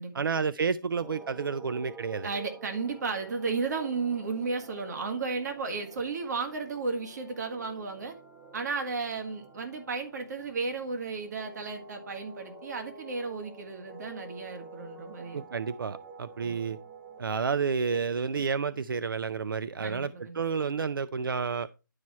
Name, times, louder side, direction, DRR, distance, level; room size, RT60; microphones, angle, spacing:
voice 1, 0.1-2.3 15.3-16.8 17.2-21.7, right 5 dB, 80° right, 0.5 m, -30 dB
sound 1, 1.0-17.6, right 3 dB, 5° right, 1.1 m, -49 dB
voice 2, 2.2-8.1 8.5-15.4 19.8-20.4, right 4 dB, 55° right, 1.8 m, -34 dB
11.0 x 4.9 x 4.2 m
hypercardioid pair, 160°, 11 cm